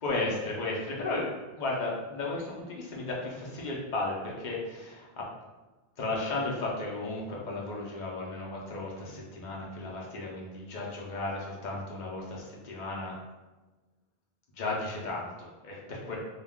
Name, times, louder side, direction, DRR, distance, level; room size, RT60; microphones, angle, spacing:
voice 1, 0.0-1.3 1.5-5.2 6.0-13.1 14.6-16.2, left 2 dB, 50° left, -3 dB, 0.7 m, -34 dB
2.3 x 2.3 x 3.4 m, 1.2 s
omnidirectional pair, 1.0 m